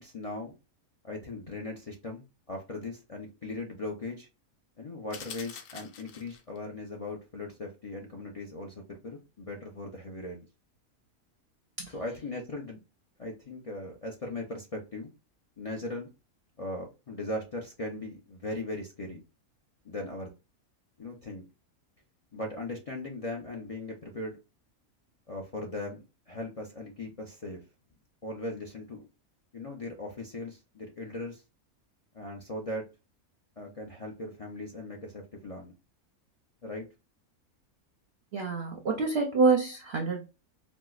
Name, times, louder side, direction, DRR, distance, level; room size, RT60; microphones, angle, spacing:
voice 1, 0.0-0.5 1.0-4.3 4.8-10.5 11.9-12.8 13.2-15.1 15.6-16.1 16.6-19.2 19.8-20.3 21.0-21.4 22.3-24.4 25.3-27.6 28.2-29.0 29.5-31.4 32.1-32.9 33.6-35.7 36.6-36.9, left 2 dB, 55° left, 0.4 m, -38 dB
sound 1, 5.1-6.6, left 7 dB, 90° left, 1.2 m, -45 dB
voice 2, 38.3-40.3, right 4 dB, 60° right, 0.7 m, -27 dB
4.5 x 2.1 x 2.3 m
omnidirectional pair, 1.5 m